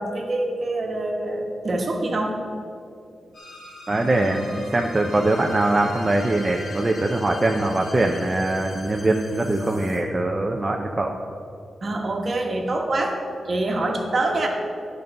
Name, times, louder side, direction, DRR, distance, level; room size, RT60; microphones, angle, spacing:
voice 1, 0.0-2.4 11.8-14.5, right 2 dB, 40° right, 2 dB, 1.4 m, -25 dB
sound 1, 3.3-10.0, left 1 dB, 90° left, 2.1 m, -42 dB
voice 2, 3.9-11.2, right 2 dB, 20° right, 1 dB, 0.6 m, -22 dB
11.0 x 5.4 x 6.5 m, 2.5 s
wide cardioid pair, 125°, 0 cm